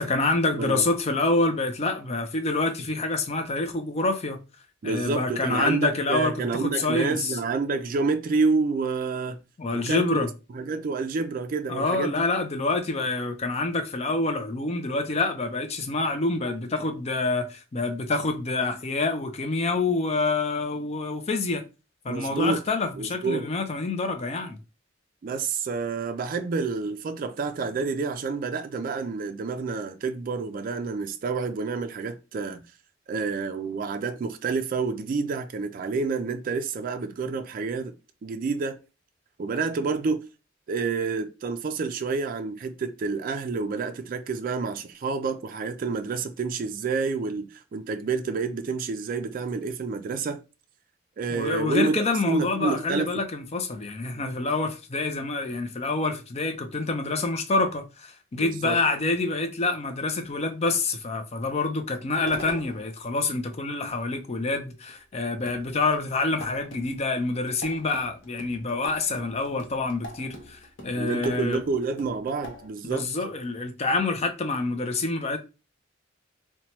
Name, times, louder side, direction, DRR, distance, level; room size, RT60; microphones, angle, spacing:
voice 1, 0.0-4.4 4.8-7.4 9.6-10.3 11.7-21.6 22.0-24.6 51.3-71.6 72.8-75.4, left 3 dB, 35° left, 0.5 m, -27 dB
voice 2, 4.8-9.4 9.7-10.3 10.5-12.2 22.1-22.6 23.0-23.5 25.2-32.6 33.1-37.9 38.2-38.8 39.4-40.3 40.7-50.4 51.2-51.9 52.3-53.2 58.4-58.8 70.9-73.1, right 4 dB, 45° right, 0.3 m, -28 dB
sound 1, 62.1-63.0 64.9-65.0 65.5-72.7, left 1 dB, 70° left, 0.7 m, -43 dB
2.9 x 2.2 x 2.8 m
head